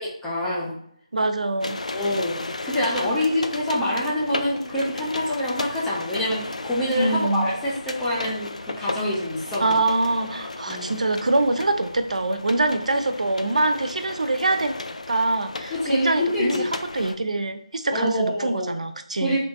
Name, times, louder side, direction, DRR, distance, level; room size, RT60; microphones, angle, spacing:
voice 1, 0.0-0.7 1.9-9.8 10.7-11.0 15.7-16.7 17.9-18.8 19.2-19.4, left 1 dB, 5° left, -7 dB, 0.4 m, -26 dB
voice 2, 1.1-1.8 2.8-3.1 7.0-7.5 9.6-14.8 15.1-19.4, right 2 dB, 85° right, 8 dB, 0.5 m, -24 dB
sound 1, 1.6-17.2, left 2 dB, 90° left, 0.4 m, -35 dB
3.8 x 2.6 x 3.5 m, 0.67 s
figure-of-eight pair, 175°, 4 cm